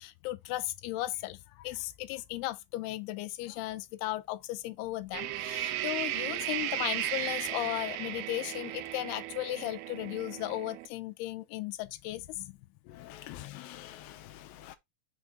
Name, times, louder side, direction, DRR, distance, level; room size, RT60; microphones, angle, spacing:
voice 1, 0.0-12.5 13.3-13.7, left 17 dB, 90° left, 2.6 m, -36 dB
sound 1, 5.1-10.9, right 14 dB, 90° right, 2.6 m, -35 dB
voice 2, 12.9-14.8, left 13 dB, 70° left, 2.4 m, -47 dB
6.6 x 3.3 x 5.1 m
omnidirectional pair, 4.5 m